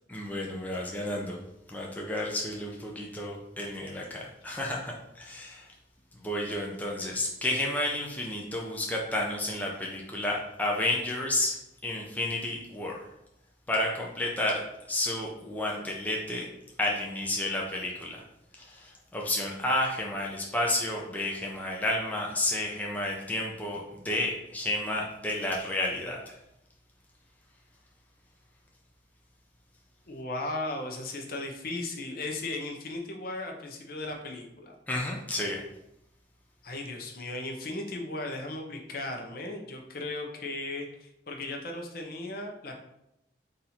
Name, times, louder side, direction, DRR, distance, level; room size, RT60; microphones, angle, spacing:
voice 1, 0.1-1.4 1.7-5.7 6.2-11.5 11.8-13.0 13.7-14.6 14.9-16.5 16.8-18.2 18.6-26.4 34.9-35.6, left 1 dB, 10° left, -2 dB, 0.5 m, -31 dB
voice 2, 30.1-34.8 36.6-42.7, left 2 dB, 55° left, 2 dB, 0.7 m, -36 dB
4.2 x 2.6 x 4.2 m, 0.84 s
head